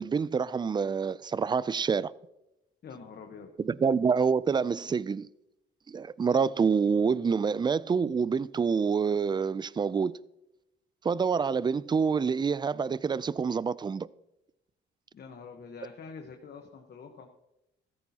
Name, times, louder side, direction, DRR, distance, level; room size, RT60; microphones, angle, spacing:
voice 1, 0.0-2.1 3.6-5.3 5.9-10.1 11.0-14.1, right 5 dB, 20° right, 0.3 m, -27 dB
voice 2, 2.8-3.5 15.1-17.3, left 5 dB, 55° left, 1.1 m, -45 dB
14.5 x 13.5 x 2.9 m
cardioid pair, 90°, 20 cm